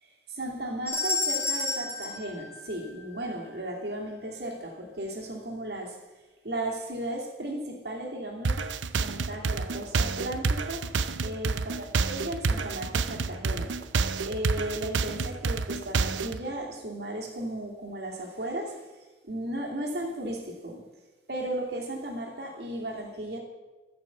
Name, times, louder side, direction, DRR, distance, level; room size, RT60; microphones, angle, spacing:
voice 1, 0.0-6.0 6.4-8.6 9.0-10.9 11.2-13.8 14.2-18.9 19.2-20.8 21.3-23.4, right 1 dB, 60° right, -1 dB, 2.8 m, -35 dB
sound 1, 0.9-3.3, left 3 dB, 15° left, 3.1 m, -31 dB
sound 2, 8.4-16.4, right 4 dB, 90° right, 0.6 m, -28 dB
14.0 x 6.1 x 8.2 m, 1.2 s
head